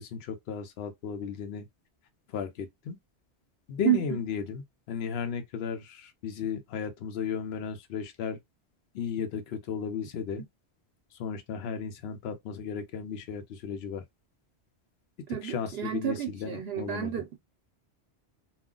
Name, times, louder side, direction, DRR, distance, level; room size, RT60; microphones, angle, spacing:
voice 1, 0.0-1.7 2.3-3.0 3.7-8.4 8.9-10.4 11.2-14.0 15.3-17.1, left 7 dB, 70° left, 0.8 m, -35 dB
voice 2, 3.8-4.2 15.3-17.4, right 12 dB, 65° right, 0.7 m, -30 dB
2.3 x 2.1 x 3.7 m
omnidirectional pair, 1.2 m